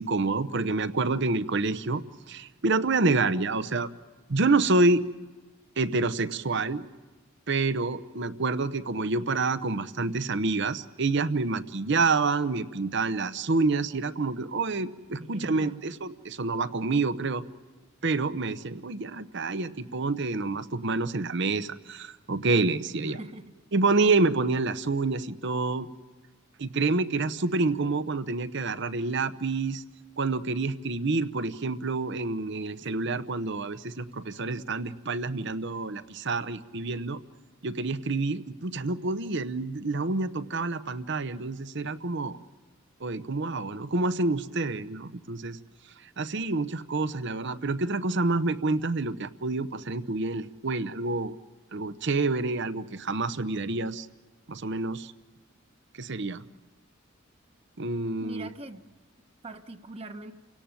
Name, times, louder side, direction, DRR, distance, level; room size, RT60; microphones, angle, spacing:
voice 1, 0.0-2.0 2.3-3.9 4.3-5.0 5.8-6.9 7.5-17.4 18.0-23.2 23.7-25.9 26.6-29.8 30.2-37.2 37.6-42.4 43.0-45.6 46.2-51.3 51.7-54.1 54.5-55.1 56.0-56.4 57.8-58.5, right 3 dB, 60° right, 13 dB, 0.8 m, -28 dB
voice 2, 15.2-16.0 23.0-23.5 58.2-58.9 59.4-60.3, right 1 dB, 30° right, 7 dB, 1.0 m, -41 dB
29.5 x 17.5 x 9.0 m, 1.3 s
head